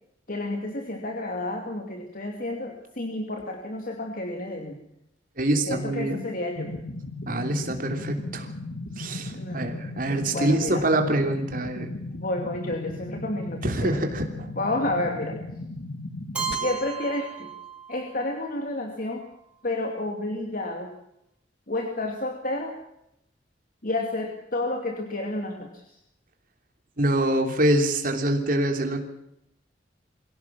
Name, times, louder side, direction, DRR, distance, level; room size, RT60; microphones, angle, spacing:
voice 1, 0.3-4.8 5.7-6.7 9.4-9.8 10.3-10.8 12.2-14.0 14.6-15.4 16.6-17.5 17.9-19.3 19.6-20.9 21.7-22.8 23.8-26.0, left 2 dB, 50° left, 3 dB, 2.6 m, -30 dB
voice 2, 5.4-6.2 7.3-8.5 9.0-11.9 13.6-14.5 27.0-29.0, right 1 dB, 50° right, 4 dB, 3.2 m, -25 dB
sound 1, 6.6-16.6, left 2 dB, 80° left, 2.1 m, -36 dB
Keyboard (musical), 16.3-18.3, right 6 dB, 10° right, 6.1 m, -34 dB
24.0 x 16.5 x 7.4 m, 0.81 s
head